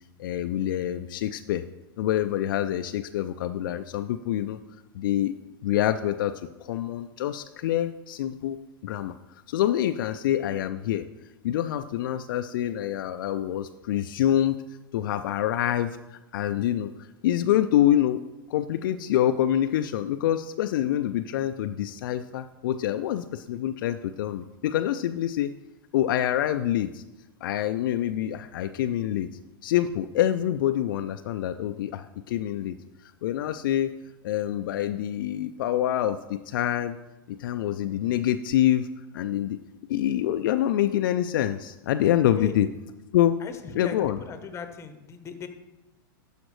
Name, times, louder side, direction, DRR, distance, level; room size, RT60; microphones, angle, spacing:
voice 1, 0.2-1.6 2.0-4.6 4.9-5.3 5.6-8.6 8.8-9.1 9.5-11.0 11.4-14.6 14.9-16.9 17.2-18.2 18.5-25.5 25.9-27.0 27.4-29.3 29.6-32.8 33.0-33.9 34.2-37.0 37.3-38.9 39.1-39.6 39.9-42.7 43.1-43.3 43.7-44.2, left 12 dB, 65° left, 8 dB, 0.4 m, -26 dB
voice 2, 43.4-45.5, left 6 dB, 25° left, 8 dB, 0.9 m, -38 dB
12.0 x 5.0 x 3.1 m, 1.0 s
hypercardioid pair, 110°, 12 cm